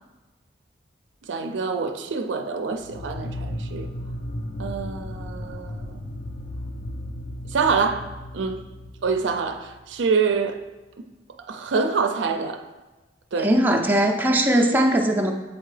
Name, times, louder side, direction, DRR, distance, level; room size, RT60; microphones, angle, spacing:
voice 1, 1.3-3.9 4.6-6.0 7.5-8.6 9.0-10.6 11.5-12.6 13.3-13.5, right 5 dB, 75° right, 6 dB, 0.4 m, -26 dB
sound 1, 2.7-10.1, left 1 dB, 45° left, 0.4 m, -35 dB
voice 2, 13.4-15.3, right 1 dB, 10° right, 0 dB, 0.5 m, -20 dB
7.2 x 4.5 x 3.2 m, 1.1 s
head